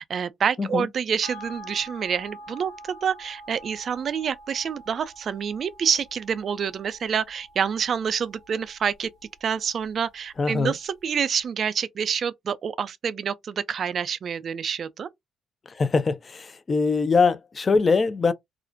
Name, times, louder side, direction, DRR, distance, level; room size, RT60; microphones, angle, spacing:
voice 1, 0.0-9.1 9.4-15.1, right 7 dB, 55° right, 0.3 m, -27 dB
sound 1, 1.2-10.0 10.3-10.4, equal, 60° left, 1.1 m, -46 dB
voice 2, 10.4-10.7 15.8-18.3, left 4 dB, 35° left, 0.4 m, -22 dB
2.4 x 2.0 x 2.5 m
hypercardioid pair, 60°, 0 cm